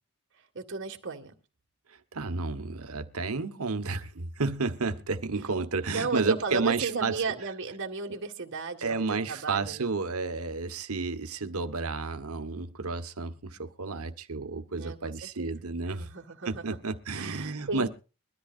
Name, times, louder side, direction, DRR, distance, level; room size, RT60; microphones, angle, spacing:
voice 1, 0.4-1.4 5.9-9.9 14.7-15.5 15.9-16.8 17.2-17.9, right 4 dB, 60° right, 1.9 m, -35 dB
voice 2, 1.9-7.1 8.8-16.1 16.4-17.9, right 4 dB, 85° right, 1.3 m, -31 dB
22.5 x 13.5 x 2.6 m
head